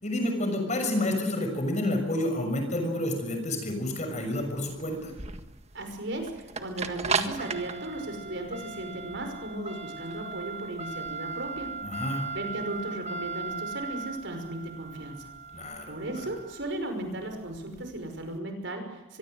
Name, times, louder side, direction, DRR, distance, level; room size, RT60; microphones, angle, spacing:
voice 1, 0.0-5.1 11.8-12.3 15.5-15.9, left 1 dB, 35° left, 5 dB, 6.4 m, -29 dB
sound 1, 4.1-18.3, right 4 dB, 35° right, 1.6 m, -37 dB
voice 2, 5.7-11.7 12.3-15.3 15.9-19.2, right 1 dB, 65° right, 6 dB, 5.6 m, -36 dB
24.5 x 23.0 x 8.0 m, 1.1 s
head